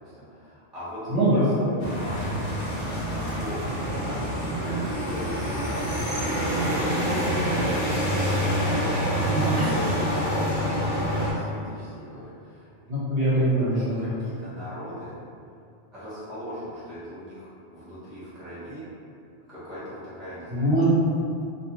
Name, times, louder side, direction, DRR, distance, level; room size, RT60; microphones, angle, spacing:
voice 1, 0.0-5.8 6.2-12.7 13.7-15.1 15.9-18.8 19.5-20.8, equal, ahead, -14 dB, 0.7 m, -38 dB
voice 2, 1.1-1.5 9.3-9.4 12.9-14.1 20.5-20.8, right 1 dB, 70° right, -11 dB, 1.0 m, -22 dB
sound 1, 1.8-11.3, equal, 40° left, 0.6 m, -26 dB
2.2 x 2.2 x 2.9 m, 2.5 s
omnidirectional pair, 1.1 m